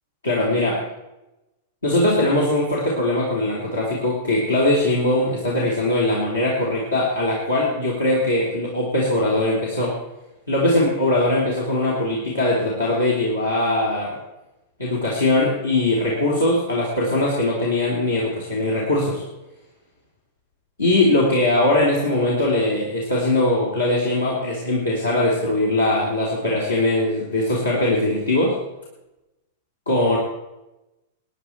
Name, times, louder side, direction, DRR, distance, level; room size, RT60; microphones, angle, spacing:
voice 1, 0.2-0.8 1.8-9.9 10.5-14.1 14.8-19.2 20.8-28.6 29.9-30.2, left 1 dB, 80° left, -4 dB, 3.0 m, -21 dB
21.0 x 9.8 x 4.5 m, 0.98 s
figure-of-eight pair, 95°, 0 cm